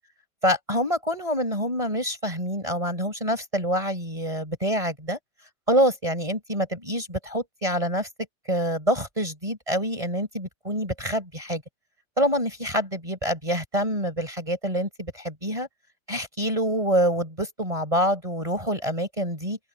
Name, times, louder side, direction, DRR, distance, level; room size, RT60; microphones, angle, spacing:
voice 1, 0.4-5.2 5.7-8.1 8.5-11.6 12.2-15.7 16.1-19.6, equal, 15° right, 5.0 m, -26 dB
open air
omnidirectional pair, 2.2 m